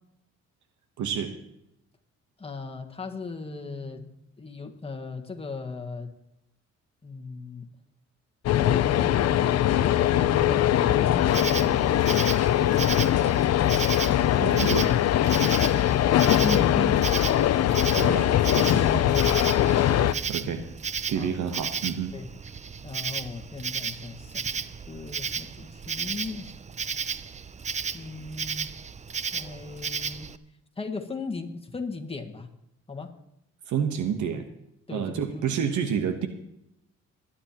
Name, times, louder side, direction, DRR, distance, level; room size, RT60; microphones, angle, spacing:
voice 1, 1.0-1.3 14.4-14.9 17.9-18.8 19.5-20.7 21.1-22.1 33.7-34.5 34.9-36.3, right 7 dB, 75° right, 7 dB, 1.2 m, -29 dB
voice 2, 2.4-4.1 4.4-6.1 7.0-7.6 8.6-12.0 16.4-17.1 18.8-19.5 20.4-20.5 21.1-21.3 22.1-22.3 22.8-24.5 24.9-26.5 27.9-28.7 29.3-30.3 30.8-32.5 32.9-33.1 34.9-35.5, left 4 dB, 20° left, 3 dB, 1.6 m, -36 dB
sound 1, 8.5-20.1, left 12 dB, 55° left, 0.5 m, -22 dB
Insect, 11.2-30.4, right 6 dB, 25° right, 0.5 m, -34 dB
21.0 x 10.0 x 3.0 m, 0.79 s
cardioid pair, 90°, 30 cm